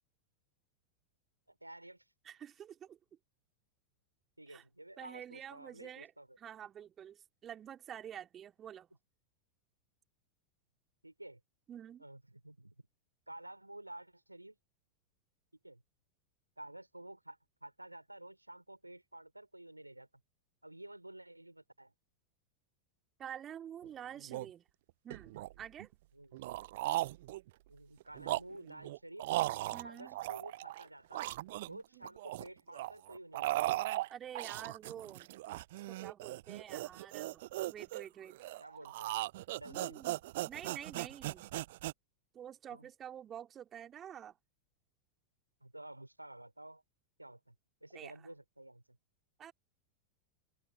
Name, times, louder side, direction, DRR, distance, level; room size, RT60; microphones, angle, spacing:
voice 1, 1.5-2.0 4.4-6.4 11.0-11.4 12.0-12.8 13.3-14.6 15.6-15.8 16.6-20.1 20.6-21.9 26.1-26.4 27.7-29.3 29.8-31.3 31.7-33.7 38.6-39.2 39.6-40.1 42.7-42.9 45.6-46.8 47.2-47.6 47.8-49.0, right 1 dB, 85° right, 3.4 m, -51 dB
voice 2, 2.2-3.0 4.5-4.6 5.0-6.1 6.4-8.9 11.7-12.0 23.2-24.6 25.0-25.9 29.7-30.2 34.1-35.3 35.9-38.4 39.7-41.6 42.3-44.4 47.9-48.2 49.4-49.5, right 9 dB, 25° right, 2.8 m, -48 dB
sound 1, 23.8-23.9 24.2-24.5 25.1-25.9 26.3-27.5 28.0-30.8 31.1-32.5 32.7-41.9, right 17 dB, 55° right, 0.4 m, -38 dB
open air
figure-of-eight pair, 90°, 0 cm